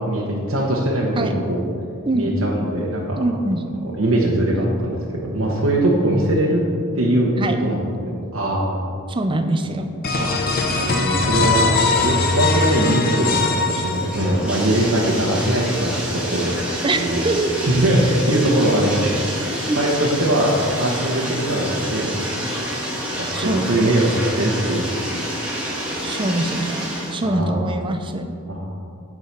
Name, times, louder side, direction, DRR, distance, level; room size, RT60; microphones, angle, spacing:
voice 1, 0.1-1.6 2.1-3.2 3.8-6.6 6.9-7.3 7.6-8.9 10.2-16.5 17.0-17.2 17.7-19.2 19.7-22.5 23.2-24.9 27.2-27.8 28.5-28.7, right 1 dB, 80° right, -4 dB, 1.0 m, -21 dB
voice 2, 3.2-3.6 7.4-7.6 9.1-9.9 16.8-17.8 19.5-19.8 23.3-23.7 26.0-28.4, right 2 dB, 25° right, 6 dB, 0.5 m, -23 dB
sound 1, 10.0-14.6, left 3 dB, 45° left, 0.8 m, -20 dB
Bathtub (filling or washing), 13.1-27.2, right 1 dB, 5° right, 1.7 m, -28 dB
9.0 x 4.8 x 5.7 m, 2.4 s
head